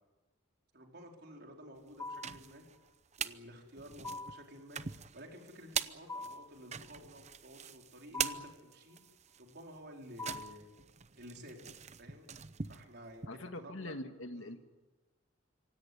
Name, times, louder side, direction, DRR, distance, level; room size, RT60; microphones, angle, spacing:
voice 1, 0.7-2.6 3.2-9.0 9.4-10.7 11.1-11.7 12.0-12.2 12.7-14.0 14.3-14.5, equal, 55° right, 2 dB, 4.5 m, -52 dB
sound 1, 1.9-3.4 3.8-13.3, right 7 dB, 35° right, 0.7 m, -42 dB
sound 2, 2.0-2.5 4.0-4.5 6.1-6.6 8.1-8.6 10.2-10.7, left 2 dB, 15° left, 0.8 m, -43 dB
voice 2, 13.3-14.6, left 1 dB, 80° left, 7 dB, 1.9 m, -43 dB
25.5 x 17.0 x 9.6 m, 1.2 s
head